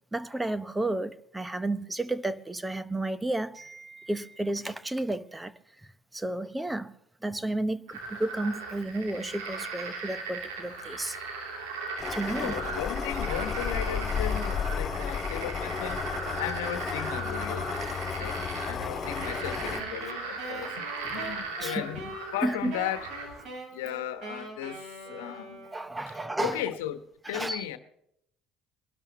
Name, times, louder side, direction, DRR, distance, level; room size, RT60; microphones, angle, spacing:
voice 1, 0.0-5.5 5.8-6.9 7.2-11.2 12.1-12.6 18.8-18.9 20.6-20.7 21.0-21.9 22.4-22.7 25.1-25.3 25.7-26.6 27.2-27.7, right 2 dB, 10° right, 0.9 m, -32 dB
sound 1, 7.9-23.5, right 4 dB, 85° right, 3.1 m, -38 dB
sound 2, 12.0-19.8, left 6 dB, 40° left, 2.3 m, -33 dB
voice 2, 12.3-17.8 18.2-20.8 21.1-23.1 23.7-25.6 26.4-27.0 27.3-27.8, left 11 dB, 85° left, 1.1 m, -36 dB
Wind instrument woodwind instrument, 19.2-26.0, right 2 dB, 65° right, 4.7 m, -43 dB
23.5 x 12.5 x 3.0 m
hypercardioid pair, 70°, 0 cm